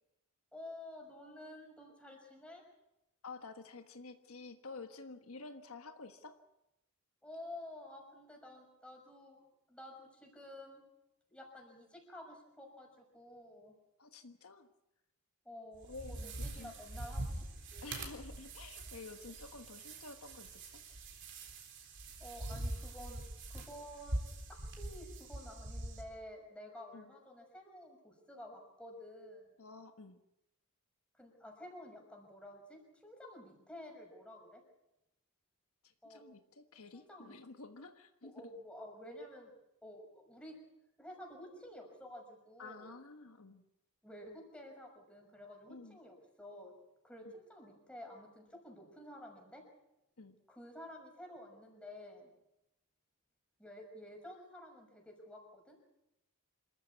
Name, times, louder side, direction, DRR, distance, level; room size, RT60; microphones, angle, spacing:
voice 1, 0.5-2.6 7.2-9.4 9.7-10.8 11.3-12.9 13.1-13.7 15.4-17.4 17.7-17.9 22.2-23.2 23.5-24.2 24.8-29.4 31.2-34.6 36.0-36.3 36.9-37.4 38.2-39.5 39.8-40.6 41.0-42.9 44.0-46.7 47.0-49.6 50.5-52.3 53.6-55.7, left 1 dB, 5° left, 1 dB, 6.0 m, -51 dB
voice 2, 3.2-6.4 14.0-14.7 15.9-16.7 17.8-20.8 26.9-27.1 29.6-30.2 35.8-38.3 42.6-43.6 45.7-46.0 47.2-47.3 50.2-50.4, left 3 dB, 70° left, 7 dB, 1.4 m, -51 dB
sound 1, 15.7-26.0, right 1 dB, 55° right, 3.9 m, -44 dB
27.0 x 14.5 x 8.3 m, 0.88 s
head